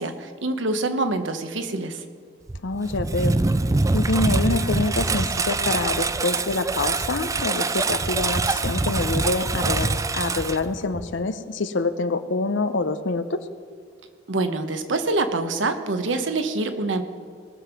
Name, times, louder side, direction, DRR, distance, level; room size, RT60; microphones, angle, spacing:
voice 1, 0.0-2.0 14.3-17.0, right 2 dB, 90° right, 8 dB, 1.1 m, -25 dB
Engine, 2.5-11.2, right 3 dB, 15° right, 0.4 m, -24 dB
voice 2, 2.6-3.4 3.9-13.4, left 3 dB, 80° left, 12 dB, 0.8 m, -26 dB
19.5 x 7.0 x 5.9 m, 2.2 s
head